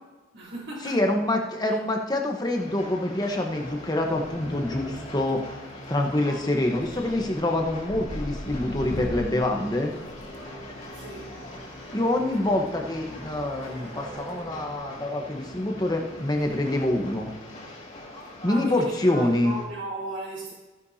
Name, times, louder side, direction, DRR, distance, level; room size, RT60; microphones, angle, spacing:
voice 1, 0.3-1.0 1.6-1.8 6.2-6.4 6.7-6.8 10.9-11.4 18.4-20.5, right 1 dB, 65° right, 3.6 m, -36 dB
voice 2, 0.8-5.4 5.9-9.9 11.9-17.3 18.4-19.5, left 1 dB, 20° left, 1.1 m, -26 dB
Train, 2.5-19.7, left 1 dB, 35° left, 2.4 m, -43 dB
sound 1, 3.6-17.3, equal, 15° right, 1.7 m, -44 dB
sound 2, 4.1-4.7 5.0-5.5 5.8-6.1 6.5-10.9 12.2-12.4 13.6-14.4 14.7-14.9 15.4-15.5 15.8-15.9 16.2-16.4 16.7-16.8 18.4-18.6, equal, 70° left, 1.8 m, -39 dB
15.0 x 9.8 x 2.8 m
head